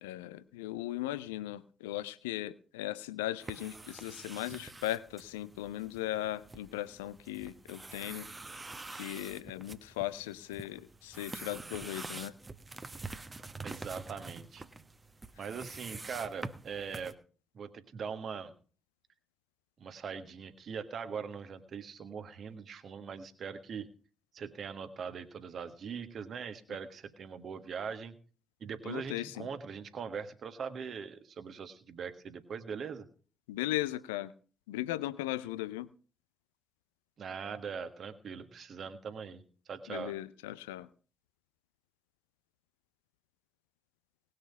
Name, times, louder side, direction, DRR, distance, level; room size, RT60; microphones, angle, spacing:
voice 1, 0.0-8.3 8.9-12.3 28.8-29.5 33.5-34.3 34.7-35.9 39.9-40.9, left 15 dB, 75° left, 18 dB, 0.5 m, -37 dB
sound 1, 3.4-17.1, right 3 dB, 25° right, 1.1 m, -46 dB
voice 2, 13.6-14.6 15.4-17.1 17.5-18.5 19.8-23.9 24.3-28.2 28.6-33.0 37.2-39.4 39.7-40.2, right 6 dB, 50° right, 9 dB, 1.4 m, -41 dB
19.0 x 6.6 x 5.8 m, 0.40 s
figure-of-eight pair, 40°, 0 cm